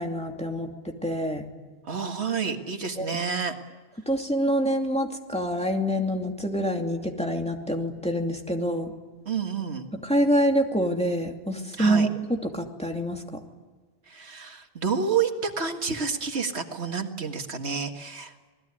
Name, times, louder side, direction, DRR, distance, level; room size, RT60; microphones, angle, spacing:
voice 1, 0.0-1.4 3.0-3.1 4.1-8.9 10.0-13.4, equal, 5° left, 2 dB, 2.6 m, -26 dB
voice 2, 1.8-3.5 9.3-9.9 11.8-12.1 14.1-18.3, right 6 dB, 85° right, 5 dB, 2.1 m, -29 dB
27.5 x 20.5 x 9.8 m, 1.4 s
omnidirectional pair, 1.1 m